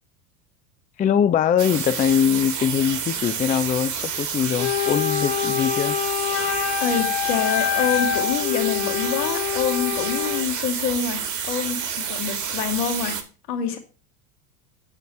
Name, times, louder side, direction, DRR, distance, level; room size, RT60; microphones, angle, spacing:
voice 1, 1.0-6.0, left 8 dB, 20° left, 0.5 m, -22 dB
sound 1, 1.6-13.2, right 7 dB, 40° right, 1.7 m, -29 dB
Wind instrument woodwind instrument, 4.6-10.5, left 12 dB, 55° left, 1.8 m, -25 dB
voice 2, 6.8-13.2 13.5-13.8, left 7 dB, 75° left, 2.0 m, -26 dB
9.5 x 6.5 x 3.2 m
hypercardioid pair, 80°, 45 cm